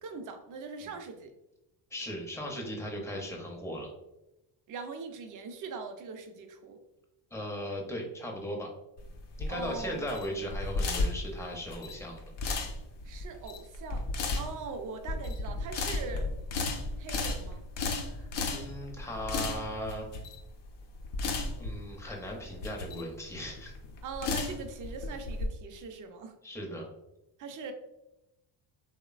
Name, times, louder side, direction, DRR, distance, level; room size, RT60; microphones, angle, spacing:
voice 1, 0.0-1.3 4.7-6.8 9.5-10.2 13.0-14.1 14.3-16.3 17.0-17.7 24.0-26.3 27.4-27.7, right 4 dB, 45° right, 6 dB, 0.4 m, -41 dB
voice 2, 1.9-3.9 7.3-8.7 9.4-12.2 18.1-20.1 21.6-23.7 26.4-26.9, equal, 5° left, -1 dB, 0.5 m, -38 dB
sound 1, 9.0-25.5, left 3 dB, 60° left, 0.6 m, -34 dB
3.0 x 2.1 x 2.3 m, 0.93 s
cardioid pair, 90°, 47 cm